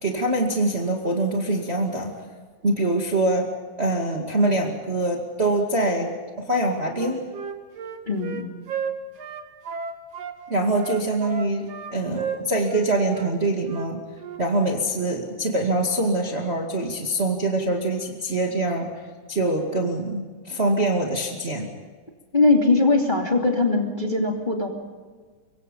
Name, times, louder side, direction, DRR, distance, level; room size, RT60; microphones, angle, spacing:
voice 1, 0.0-2.1 2.6-3.5 3.8-7.2 10.5-14.0 14.4-18.9 19.3-21.7, right 2 dB, 25° right, 0 dB, 2.1 m, -24 dB
Wind instrument woodwind instrument, 6.9-10.4 10.8-12.9 13.1-13.3 13.6-13.9 14.2-14.4, right 6 dB, 55° right, 2.5 m, -33 dB
voice 2, 8.1-8.5 22.3-24.7, left 3 dB, 15° left, 0 dB, 2.5 m, -20 dB
25.5 x 23.5 x 5.4 m, 1.5 s
omnidirectional pair, 3.5 m